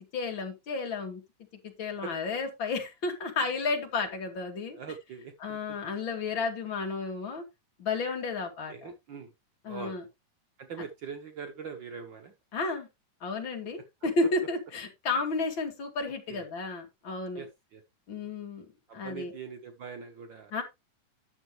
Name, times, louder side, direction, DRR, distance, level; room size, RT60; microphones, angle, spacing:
voice 1, 0.1-1.2 1.6-4.8 5.4-7.4 7.8-8.9 9.6-10.0 12.5-12.9 13.2-17.5 18.1-18.7 18.9-19.3 20.5-20.6, left 3 dB, 40° left, 2.5 m, -32 dB
voice 2, 4.7-5.8 8.7-9.3 9.7-10.0 10.6-12.3 14.0-14.1 16.3-16.5 17.3-17.8 18.9-20.5, right 6 dB, 85° right, 1.0 m, -42 dB
10.5 x 7.0 x 3.2 m
omnidirectional pair, 3.6 m